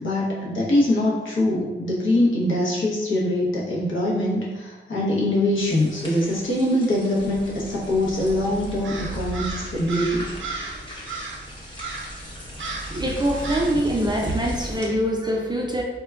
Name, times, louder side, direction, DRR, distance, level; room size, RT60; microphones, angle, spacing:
voice 1, 0.0-10.3, left 1 dB, 90° left, -5 dB, 0.8 m, -23 dB
sound 1, 5.5-14.9, equal, 25° left, 0.8 m, -42 dB
sound 2, 7.2-14.8, right 1 dB, 60° left, 0.9 m, -37 dB
Crow, 8.8-10.8 11.1-11.4 11.8-12.2 12.6-13.0 13.4-13.8, right 4 dB, 85° right, 0.5 m, -34 dB
voice 2, 12.9-15.8, right 1 dB, 20° right, -1 dB, 0.4 m, -24 dB
4.4 x 2.2 x 2.3 m, 1.2 s
wide cardioid pair, 90°, 19 cm